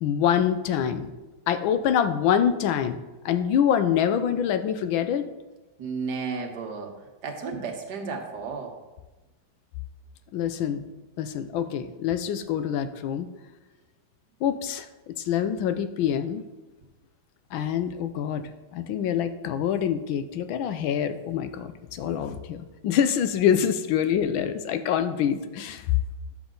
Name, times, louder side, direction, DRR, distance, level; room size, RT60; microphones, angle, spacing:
voice 1, 0.0-1.1 1.5-5.3 10.3-10.8 11.2-13.3 14.4-16.4 17.5-26.0, left 9 dB, 80° left, 10 dB, 1.4 m, -25 dB
voice 2, 5.8-7.0 7.2-8.8, right 5 dB, 55° right, 2 dB, 1.7 m, -33 dB
10.0 x 7.4 x 3.8 m, 1.1 s
omnidirectional pair, 2.2 m